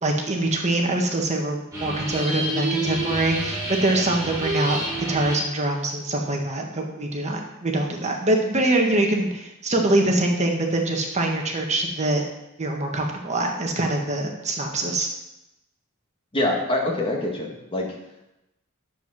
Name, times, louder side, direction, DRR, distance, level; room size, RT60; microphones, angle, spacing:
voice 1, 0.0-4.8 5.1-12.2 12.6-15.1, right 2 dB, 35° right, 2 dB, 1.5 m, -24 dB
sound 1, 1.7-5.5, right 1 dB, 15° right, 5.0 m, -28 dB
voice 2, 16.3-17.9, left 1 dB, 25° left, 0 dB, 1.9 m, -25 dB
10.5 x 7.6 x 6.1 m, 0.91 s
head